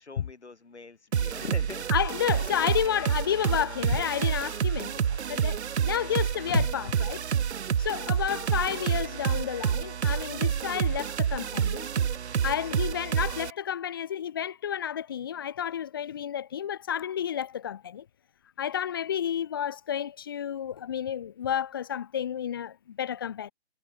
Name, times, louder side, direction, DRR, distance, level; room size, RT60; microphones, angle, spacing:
voice 1, 0.0-3.6 6.1-6.2, left 3 dB, 80° left, 4.2 m, -44 dB
sound 1, 1.1-13.5, right 8 dB, 80° right, 0.5 m, -28 dB
voice 2, 1.9-7.2 7.8-11.9 12.4-18.0 18.6-23.5, left 9 dB, 20° left, 0.7 m, -31 dB
sound 2, 8.0-13.5, left 7 dB, 50° left, 4.9 m, -57 dB
figure-of-eight pair, 150°, 33 cm